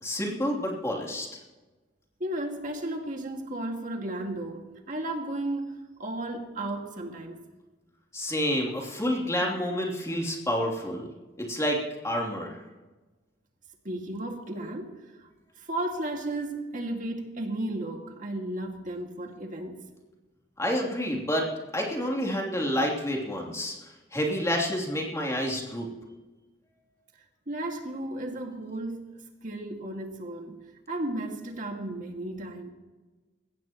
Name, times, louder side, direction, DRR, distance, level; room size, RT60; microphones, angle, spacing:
voice 1, 0.0-1.4 8.1-11.1 11.4-11.8 12.0-12.6 20.6-25.9, equal, 15° left, 2.9 m, -29 dB
voice 2, 2.2-7.4 13.8-15.3 15.6-19.8 27.5-29.1 29.4-30.6 30.9-32.7, right 1 dB, 45° right, 2.0 m, -34 dB
20.0 x 16.5 x 3.0 m
head